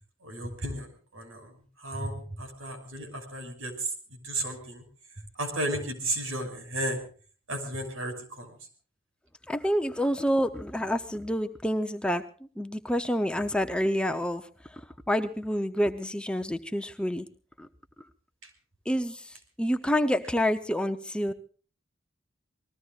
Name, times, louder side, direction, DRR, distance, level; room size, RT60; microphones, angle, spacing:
voice 1, 0.2-4.8 5.4-7.0 7.5-8.6 18.4-18.5, right 1 dB, 80° right, 6 dB, 5.9 m, -34 dB
voice 2, 9.5-12.2 12.6-14.5 15.1-17.3 17.6-17.7 18.9-21.3, equal, 5° left, 7 dB, 0.8 m, -28 dB
27.5 x 20.0 x 2.5 m, 0.40 s
head